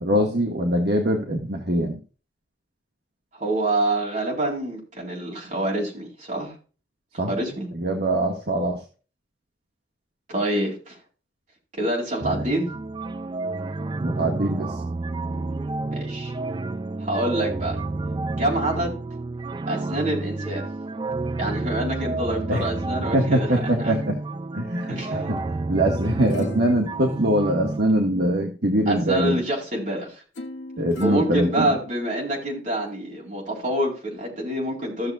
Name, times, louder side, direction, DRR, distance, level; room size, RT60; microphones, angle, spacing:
voice 1, 0.0-2.0 7.2-7.3 7.7-8.8 14.0-14.8 22.5-22.7 23.1-24.2 24.5-25.4 25.7-29.4 30.8-31.7, right 1 dB, 55° right, 2 dB, 1.5 m, -23 dB
voice 2, 3.3-6.5 7.3-7.7 10.3-11.0 11.7-12.7 15.9-16.3 17.0-17.8 18.4-18.9 19.7-20.6 21.4-23.5 23.8-23.9 24.9-25.3 28.9-30.2 31.0-35.1, right 1 dB, 40° right, -1 dB, 4.1 m, -26 dB
sound 1, 12.2-27.8, right 3 dB, 25° right, 0.3 m, -30 dB
sound 2, 26.0-28.3 30.4-32.4 32.9-33.0, left 1 dB, 70° left, 1.2 m, -40 dB
15.5 x 6.8 x 2.4 m, 0.35 s
head